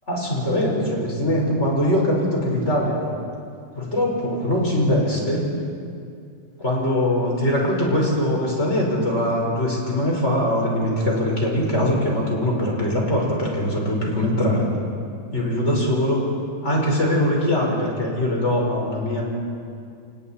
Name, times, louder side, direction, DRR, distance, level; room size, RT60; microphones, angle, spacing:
voice 1, 0.1-3.0 3.7-5.5 6.6-14.6 15.3-16.2 16.6-19.2, left 1 dB, 40° left, -2 dB, 5.1 m, -22 dB
29.5 x 27.0 x 4.3 m, 2.4 s
omnidirectional pair, 1.9 m